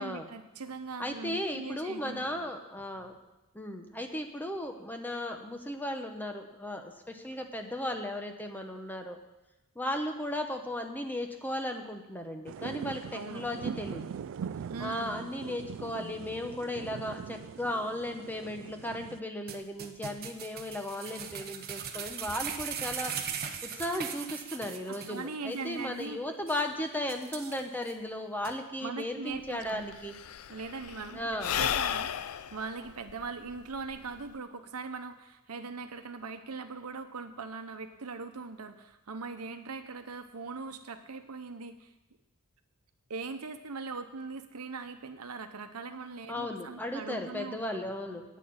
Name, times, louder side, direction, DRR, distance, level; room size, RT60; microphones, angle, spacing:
voice 1, 0.0-2.4 13.1-13.5 14.7-15.3 24.9-26.2 28.8-29.9 30.5-41.9 43.1-47.9, right 4 dB, 90° right, 7 dB, 0.9 m, -41 dB
voice 2, 1.0-3.2 3.5-9.2 9.8-14.0 14.8-23.1 23.7-30.1 31.1-31.6 46.3-48.4, left 1 dB, 10° left, 5 dB, 0.9 m, -36 dB
sound 1, 12.5-19.2, right 7 dB, 60° right, 0.3 m, -41 dB
sound 2, 19.5-25.2 25.5-25.6 26.0-26.1 26.5-26.6 27.1-27.9 28.4-28.5, right 7 dB, 45° right, 0.9 m, -39 dB
Sigh / Breathing, 29.3-29.4 29.6-34.4, left 9 dB, 70° left, 0.4 m, -34 dB
9.2 x 6.5 x 8.6 m, 0.98 s
head